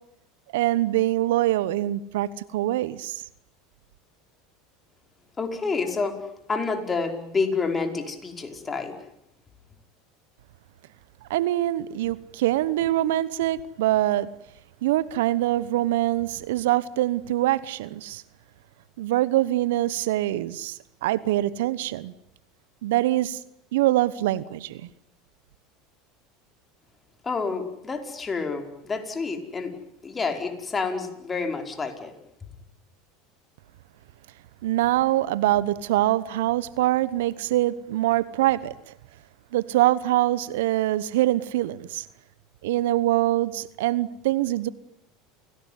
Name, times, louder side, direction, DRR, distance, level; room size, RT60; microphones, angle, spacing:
voice 1, 0.5-3.2 11.3-14.3 14.8-18.2 19.0-22.1 22.8-23.4 23.7-24.8 34.6-38.7 39.5-42.1 42.6-44.7, right 15 dB, 75° right, 1.0 m, -24 dB
voice 2, 5.4-6.2 6.5-9.0 27.2-29.7 30.0-32.1, left 4 dB, 25° left, 5.2 m, -28 dB
30.0 x 18.5 x 9.6 m
hypercardioid pair, 85°, 0 cm